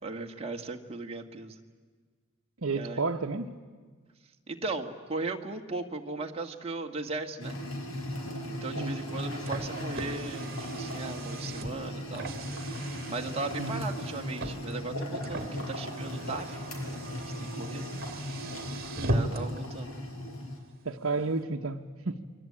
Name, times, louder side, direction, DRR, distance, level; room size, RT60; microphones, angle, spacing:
voice 1, 0.0-1.6 2.8-3.0 4.5-7.6 8.5-12.3 13.1-16.7 17.2-17.9 19.1-20.0 21.2-21.3, right 3 dB, 30° right, 2 dB, 1.8 m, -37 dB
voice 2, 2.6-3.5 8.8-9.0 13.6-13.9 19.0-19.3 20.8-22.2, right 3 dB, 70° right, 1 dB, 1.1 m, -32 dB
sound 1, 7.4-20.6, left 1 dB, 80° left, 4.8 m, -37 dB
Car, 9.0-19.6, right 1 dB, 45° right, 2.2 m, -39 dB
28.5 x 22.5 x 8.7 m, 1.5 s
head